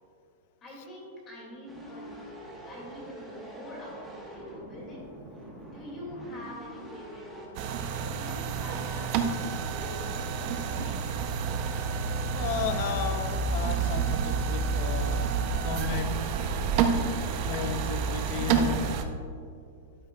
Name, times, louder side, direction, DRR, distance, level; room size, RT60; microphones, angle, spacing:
voice 1, 0.6-2.2 2.7-5.0 5.7-9.3 9.7-11.1, left 1 dB, 20° left, 2.1 m, -44 dB
sound 1, 1.7-7.5, right 1 dB, ahead, 1.1 m, -45 dB
sound 2, 7.5-19.0, right 5 dB, 35° right, 0.5 m, -29 dB
voice 2, 12.3-15.3 15.7-16.6 17.4-19.0, left 8 dB, 40° left, 0.4 m, -34 dB
12.5 x 8.6 x 2.3 m
supercardioid pair, 175°, 0 cm